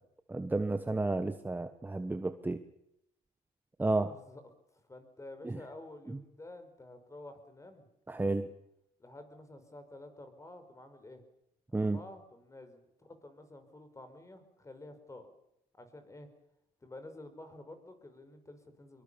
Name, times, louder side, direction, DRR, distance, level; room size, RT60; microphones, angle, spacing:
voice 1, 0.3-2.6 3.8-4.1 5.4-5.6 8.1-8.5 11.7-12.0, right 2 dB, 10° right, 9 dB, 1.3 m, -31 dB
voice 2, 4.0-4.4 4.7-8.4 9.0-11.2 11.7-15.3 15.7-16.3 16.8-19.0, left 2 dB, 20° left, 9 dB, 5.3 m, -51 dB
23.5 x 23.0 x 7.0 m, 0.79 s
cardioid pair, 110°, 17 cm